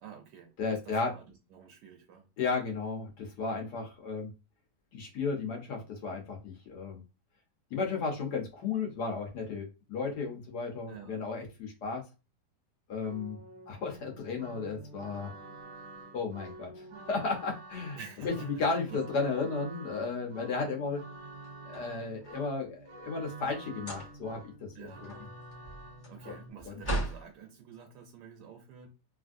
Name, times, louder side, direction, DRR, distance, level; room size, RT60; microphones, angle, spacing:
voice 1, 0.0-2.3 10.9-11.2 18.0-19.0 24.7-25.1 26.1-28.9, right 7 dB, 75° right, 1.1 m, -49 dB
voice 2, 0.6-1.1 2.4-4.3 4.9-7.0 7.7-12.0 12.9-13.4 13.7-15.3 16.1-21.0 21.6-24.5 24.8-25.1 26.2-26.3 26.6-26.8, left 4 dB, 70° left, 1.5 m, -34 dB
sound 1, 13.0-26.5, right 2 dB, 60° right, 0.8 m, -48 dB
sound 2, 21.3-22.5 23.7-24.4 24.8-27.3, right 1 dB, 15° left, 1.0 m, -38 dB
3.2 x 2.6 x 2.5 m
omnidirectional pair, 1.9 m